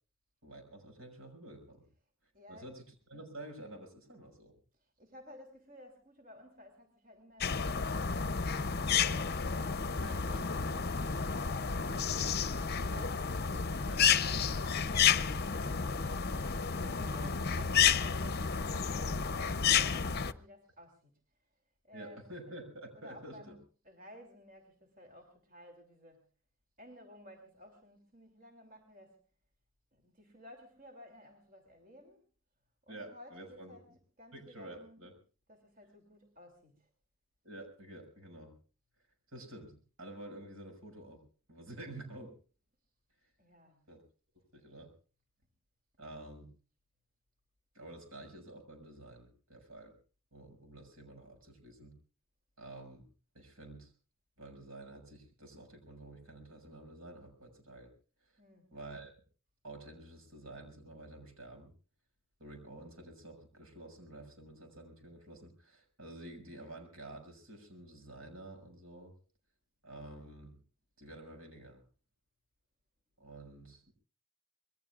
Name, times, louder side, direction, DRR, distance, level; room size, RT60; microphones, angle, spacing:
voice 1, 0.4-1.9 2.5-4.6 9.9-10.5 13.8-14.0 17.2-17.4 19.7-19.9 21.9-23.6 32.9-33.8 34.3-35.1 37.4-38.5 39.3-41.2 41.5-42.4 43.9-44.0 44.5-44.9 46.0-46.5 47.7-50.0 50.3-51.9 52.6-53.1 53.3-53.9 54.4-57.9 58.7-59.1 59.6-61.7 62.4-69.1 69.8-70.6 71.0-71.8 73.2-73.9, right 1 dB, 80° right, 3 dB, 6.5 m, -49 dB
voice 2, 2.3-2.7 4.7-9.4 16.8-22.4 22.9-23.6 23.8-26.3 26.8-29.2 29.9-32.2 32.8-33.9 34.2-35.1 35.5-36.9 43.4-43.8 58.4-58.7, left 1 dB, 40° right, 3 dB, 3.0 m, -56 dB
sound 1, 7.4-20.3, left 6 dB, 45° left, 0.7 m, -31 dB
26.5 x 21.5 x 2.5 m, 0.39 s
head